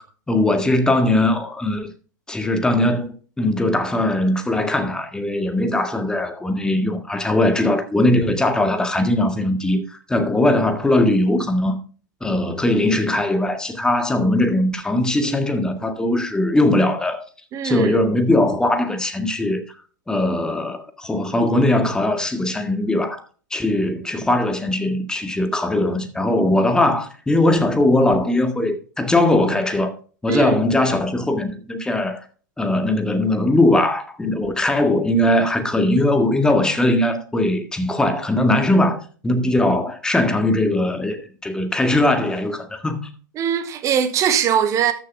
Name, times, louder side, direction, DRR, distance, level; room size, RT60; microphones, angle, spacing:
voice 1, 0.3-1.9 2.3-11.8 12.2-17.2 17.6-19.6 20.1-23.2 23.5-29.9 30.2-32.2 32.6-39.0 39.2-43.0, left 1 dB, 5° left, 1.8 m, -20 dB
voice 2, 17.5-18.0 30.3-30.6 43.3-44.9, right 8 dB, 30° right, 1.7 m, -21 dB
13.5 x 6.8 x 3.5 m
figure-of-eight pair, 95°, 10 cm